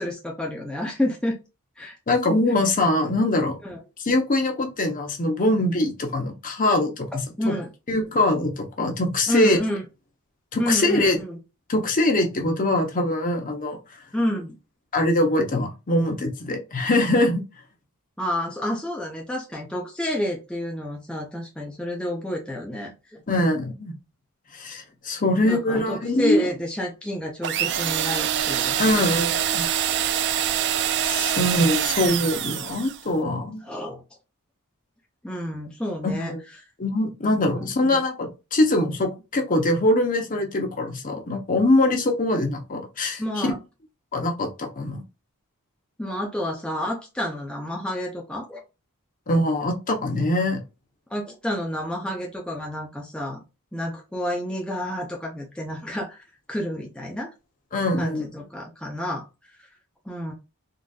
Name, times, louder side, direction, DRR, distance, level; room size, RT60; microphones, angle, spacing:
voice 1, 0.0-1.4 1.8-2.0 3.6-3.8 7.4-7.7 9.3-9.8 10.6-11.4 14.1-14.6 18.2-23.5 25.4-29.0 33.6-34.0 35.2-36.3 37.5-38.0 43.2-43.6 46.0-48.6 51.1-53.4 53.7-56.2 56.5-57.3 58.0-59.2 59.6-59.7 60.1-60.3, left 1 dB, 5° left, 0.5 m, -29 dB
voice 2, 2.1-3.6 4.0-7.1 7.4-7.5 7.9-9.6 10.5-11.2 11.7-13.8 14.9-17.4 23.3-23.9 24.5-26.4 28.8-29.7 31.0-33.6 36.0-36.4 36.8-43.5 44.1-45.0 49.3-50.6 57.7-58.2, left 1 dB, 35° left, 0.8 m, -23 dB
sound 1, 27.4-33.0, right 10 dB, 50° right, 0.3 m, -25 dB
3.8 x 2.5 x 2.3 m
head